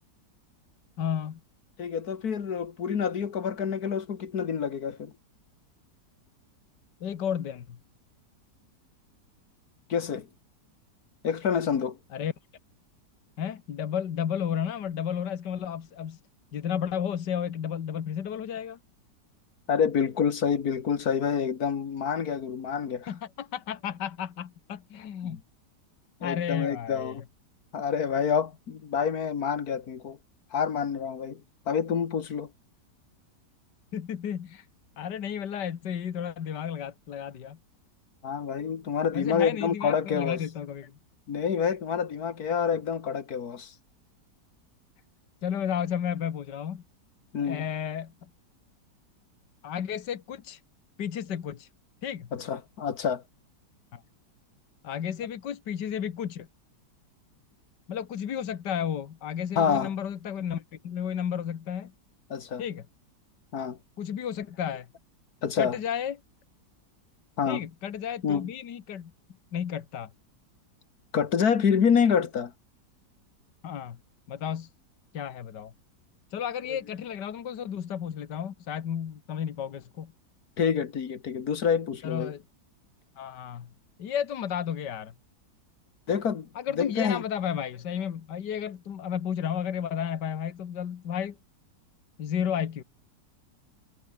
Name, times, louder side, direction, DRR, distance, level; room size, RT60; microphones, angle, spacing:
voice 1, 1.0-1.4 7.0-7.8 12.1-12.3 13.4-16.2 16.5-18.8 23.1-25.4 26.2-27.2 33.9-34.6 35.0-37.6 39.1-40.9 45.4-46.8 47.4-48.1 49.6-50.6 51.0-51.7 52.0-52.3 53.9-54.0 54.8-56.5 57.9-61.9 62.6-62.8 64.0-64.9 65.6-66.2 67.5-69.1 69.5-70.1 73.6-74.0 74.3-74.7 75.1-75.7 76.3-80.1 82.0-82.4 83.2-83.7 84.0-85.1 86.6-91.4 92.2-92.8, left 8 dB, 75° left, 2.0 m, -32 dB
voice 2, 1.8-5.1 9.9-10.3 11.2-12.0 19.7-23.1 25.3-25.4 26.2-27.2 27.7-30.2 30.5-31.4 31.7-32.5 38.2-40.4 41.3-43.7 47.3-47.7 52.3-53.2 59.6-59.9 62.3-62.6 63.5-63.8 65.4-65.8 67.4-67.6 68.2-68.5 71.1-72.5 80.6-82.3 86.1-86.5 86.8-87.2, left 7 dB, 60° left, 2.0 m, -27 dB
omnidirectional pair, 1.9 m